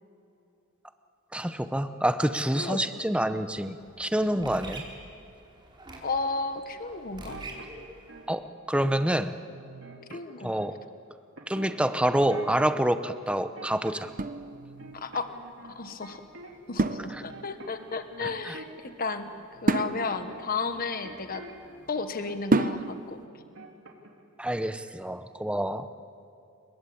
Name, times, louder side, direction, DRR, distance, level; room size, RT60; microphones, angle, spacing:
voice 1, 1.3-4.8 8.3-9.3 10.1-10.8 11.5-14.1 17.1-17.2 18.2-18.6 24.4-25.9, right 1 dB, 5° right, 10 dB, 0.9 m, -27 dB
sound 1, 3.4-8.3, right 2 dB, 20° right, 4.1 m, -46 dB
voice 2, 6.0-7.4 10.1-10.6 14.9-15.3 15.7-16.2 16.7-19.3 19.6-21.4 21.9-23.2, left 4 dB, 45° left, 8 dB, 1.3 m, -33 dB
sound 2, 7.2-8.3 8.8-9.2 9.5-10.8 11.4-12.9 13.3-14.2 14.5-16.7 17.0-21.9 22.3-22.9 23.2-24.3 24.5-24.8, right 2 dB, 70° right, 3.3 m, -47 dB
sound 3, 14.1-15.1 16.8-17.7 19.7-21.7 22.5-23.2, right 2 dB, 40° right, 0.8 m, -29 dB
28.5 x 22.5 x 8.7 m, 2.6 s
head